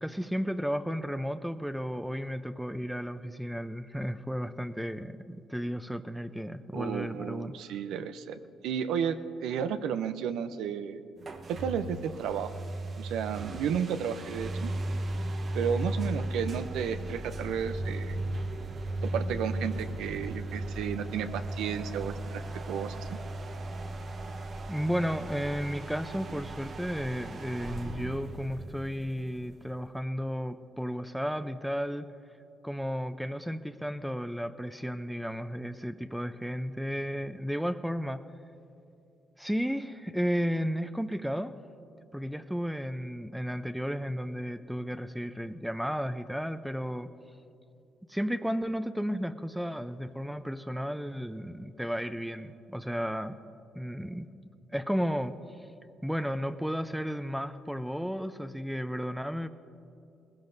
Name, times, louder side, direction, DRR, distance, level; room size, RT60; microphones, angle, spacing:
voice 1, 0.0-7.5 24.7-32.1 32.6-38.2 39.4-41.5 42.1-47.1 48.1-53.4 53.7-54.3 54.7-55.4 56.0-59.5, equal, 5° right, 11 dB, 0.6 m, -33 dB
voice 2, 6.7-11.0 11.5-12.5 13.0-14.7 15.5-18.1 19.0-23.2, right 8 dB, 80° right, 10 dB, 0.5 m, -33 dB
sound 1, 11.2-29.7, right 1 dB, 50° right, 1.0 m, -36 dB
19.5 x 16.0 x 2.6 m, 2.6 s
supercardioid pair, 55°, 0 cm